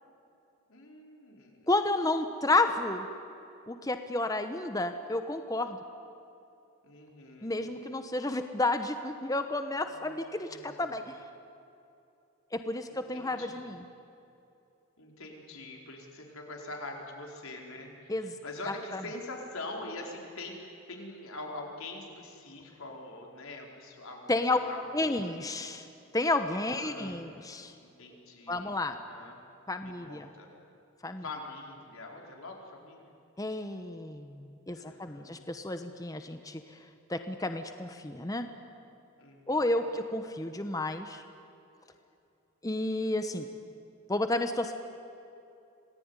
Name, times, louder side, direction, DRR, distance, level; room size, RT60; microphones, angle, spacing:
voice 1, 0.7-1.7 6.8-7.7 9.8-10.9 12.9-13.6 15.0-25.1 26.7-29.4 29.8-30.5 31.2-33.1 34.7-35.5 39.2-40.3, left 2 dB, 70° left, 1 dB, 4.6 m, -44 dB
voice 2, 1.7-3.1 3.7-5.8 7.4-11.2 12.5-13.9 18.1-18.4 18.7-19.0 24.3-24.6 24.9-25.9 26.1-27.7 28.5-29.0 29.7-30.3 31.0-31.2 33.4-36.8 37.1-38.5 39.5-41.2 42.6-43.5 44.1-44.7, left 2 dB, 15° left, 8 dB, 1.0 m, -31 dB
27.0 x 19.0 x 9.8 m, 2.7 s
head